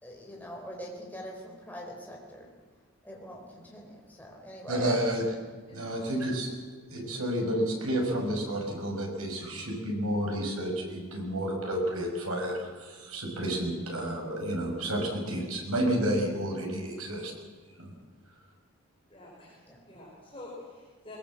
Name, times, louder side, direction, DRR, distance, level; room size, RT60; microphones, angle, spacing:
voice 1, 0.0-2.5 3.0-3.9 4.2-4.9 19.7-19.8, equal, 10° left, -1 dB, 4.6 m, -43 dB
voice 2, 4.7-5.3 5.7-17.3 17.7-17.9, right 1 dB, 85° right, 1 dB, 5.9 m, -31 dB
voice 3, 5.7-6.0 19.1-21.2, left 2 dB, 25° left, -4 dB, 5.1 m, -48 dB
22.0 x 21.0 x 7.6 m, 1.5 s
head